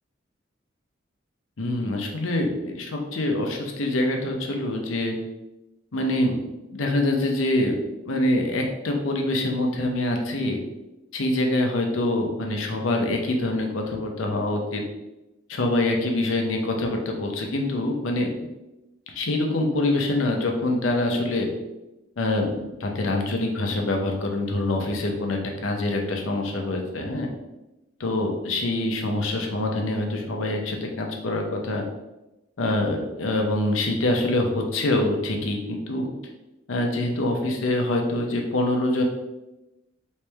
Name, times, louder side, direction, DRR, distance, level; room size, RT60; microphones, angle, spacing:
voice 1, 1.6-5.1 5.9-6.4 6.7-7.8 8.0-10.6 11.1-14.8 15.5-18.3 19.1-21.5 22.2-27.3 28.0-31.8 32.6-36.1 36.7-39.0, left 1 dB, 90° left, 2 dB, 0.7 m, -25 dB
3.2 x 3.1 x 3.3 m, 0.98 s
head